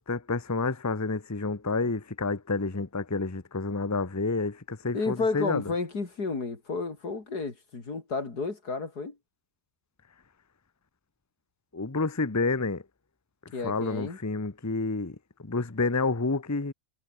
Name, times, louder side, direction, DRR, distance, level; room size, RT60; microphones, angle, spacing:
voice 1, 0.0-5.6 11.7-12.8 13.4-16.7, left 3 dB, 10° left, 1.0 m, -29 dB
voice 2, 4.9-9.2 13.5-14.2, left 4 dB, 85° left, 4.0 m, -31 dB
omnidirectional pair, 1.7 m